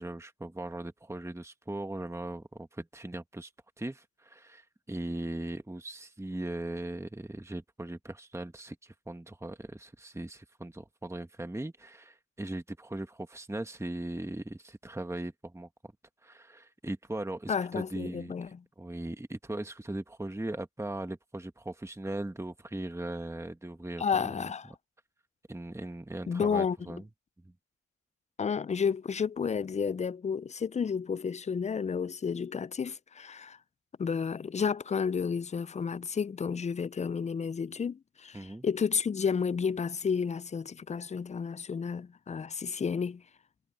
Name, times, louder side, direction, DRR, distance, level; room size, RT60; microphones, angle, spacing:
voice 1, 0.0-3.5 3.8-15.7 16.2-18.3 18.8-24.0 24.3-24.5 25.5-27.0 27.4-27.5 38.3-38.7, right 1 dB, 10° right, 1.5 m, -39 dB
voice 2, 17.5-18.6 24.0-24.7 26.3-27.0 28.4-33.6 34.0-43.2, left 6 dB, 25° left, 0.3 m, -31 dB
cardioid pair, 80°, 30 cm